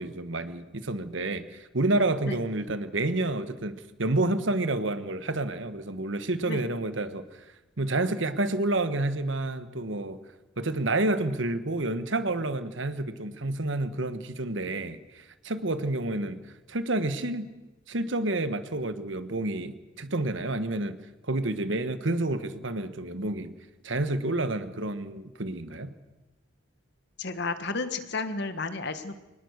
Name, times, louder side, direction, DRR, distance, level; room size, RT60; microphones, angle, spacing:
voice 1, 0.0-7.4 7.8-10.2 10.6-16.4 16.7-17.5 17.9-21.0 21.3-23.5 23.8-25.9, right 2 dB, 65° right, 11 dB, 1.4 m, -29 dB
voice 2, 27.2-29.1, left 3 dB, 55° left, 10 dB, 1.5 m, -32 dB
24.5 x 19.0 x 6.6 m, 1.1 s
head